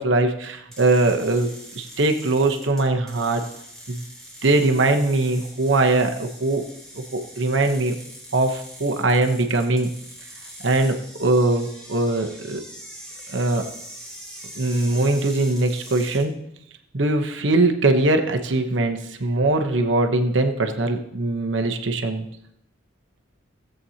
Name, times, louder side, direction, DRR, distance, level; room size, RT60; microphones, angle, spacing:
voice 1, 0.0-3.4 3.9-4.0 4.4-6.7 6.9-8.0 8.3-9.9 10.6-12.6 13.3-13.6 14.5-16.3 16.9-22.2, right 2 dB, 70° right, 5 dB, 1.0 m, -21 dB
sound 1, 0.7-16.2, equal, 5° left, 3.3 m, -42 dB
17.0 x 7.7 x 2.9 m, 0.76 s
head